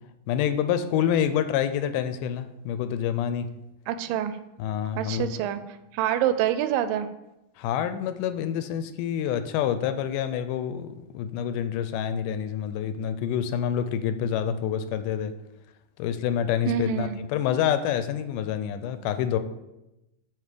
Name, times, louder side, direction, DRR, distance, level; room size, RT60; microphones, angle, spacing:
voice 1, 0.3-3.5 4.6-5.3 7.6-15.3 16.0-19.4, left 9 dB, 80° left, 10 dB, 2.0 m, -27 dB
voice 2, 3.9-4.4 5.0-5.6 5.9-7.1 16.7-17.2, right 11 dB, 90° right, 11 dB, 2.3 m, -26 dB
8.8 x 3.3 x 6.7 m, 0.92 s
omnidirectional pair, 3.8 m